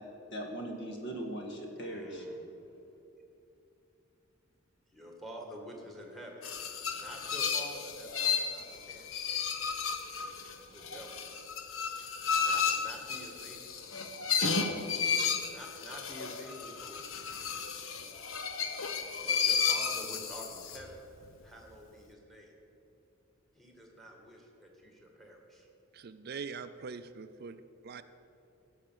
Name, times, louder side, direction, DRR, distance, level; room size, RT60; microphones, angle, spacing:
voice 1, 0.0-2.2, right 1 dB, 60° left, 2 dB, 1.8 m, -40 dB
voice 2, 1.7-2.5 4.9-6.5 6.9-9.1 10.7-11.3 12.4-13.8 15.5-17.0 19.2-21.0 21.4-22.5 23.5-25.7, equal, ahead, 0 dB, 1.8 m, -48 dB
sound 1, 6.4-20.9, left 6 dB, 75° left, 1.0 m, -33 dB
voice 3, 25.9-28.0, right 5 dB, 50° right, 11 dB, 0.4 m, -43 dB
16.5 x 6.4 x 7.4 m, 2.8 s
head